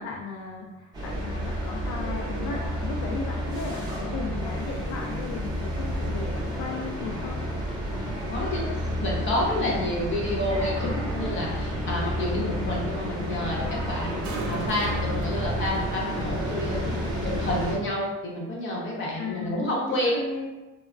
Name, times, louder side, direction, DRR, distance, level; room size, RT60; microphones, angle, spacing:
voice 1, 0.0-7.6 9.6-9.8 10.8-11.3 19.2-20.5, left 4 dB, 70° left, -1 dB, 0.4 m, -36 dB
sound 1, 0.9-17.8, equal, 15° right, 0.7 m, -30 dB
voice 2, 8.3-16.9 17.2-20.2, left 1 dB, 40° left, -4 dB, 0.8 m, -29 dB
sound 2, 10.9-17.4, right 2 dB, 65° right, 0.6 m, -41 dB
3.3 x 2.1 x 2.4 m, 1.1 s
cardioid pair, 150°, 32 cm